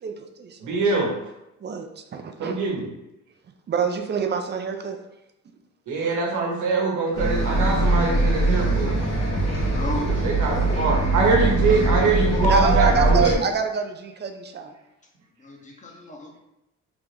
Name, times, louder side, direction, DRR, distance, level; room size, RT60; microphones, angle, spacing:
voice 1, 0.0-0.7 1.6-2.6 3.7-5.0 12.4-14.7, right 6 dB, 35° right, 6 dB, 0.5 m, -26 dB
voice 2, 0.6-1.1 2.4-2.9 5.9-9.0 9.9-13.4, right 3 dB, 75° right, 0 dB, 1.0 m, -23 dB
Bus, 7.1-13.3, right 2 dB, 60° left, 1.1 m, -22 dB
voice 3, 9.7-11.0 11.3-12.5 15.4-16.4, left 2 dB, 25° left, 1 dB, 0.8 m, -37 dB
3.5 x 2.5 x 3.3 m, 0.90 s
cardioid pair, 90°, 30 cm